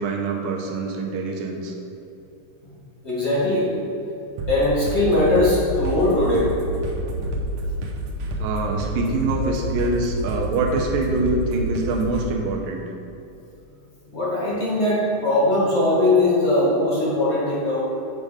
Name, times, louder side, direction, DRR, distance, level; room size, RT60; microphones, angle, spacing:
voice 1, 0.0-1.7 8.4-12.8, right 3 dB, 90° right, 1 dB, 2.6 m, -25 dB
voice 2, 3.0-3.7 4.5-6.5 14.1-17.8, left 1 dB, 25° left, -7 dB, 1.5 m, -20 dB
sound 1, 4.4-12.2, equal, 70° right, 2.2 m, -28 dB
7.6 x 6.8 x 5.0 m, 2.8 s
omnidirectional pair, 4.0 m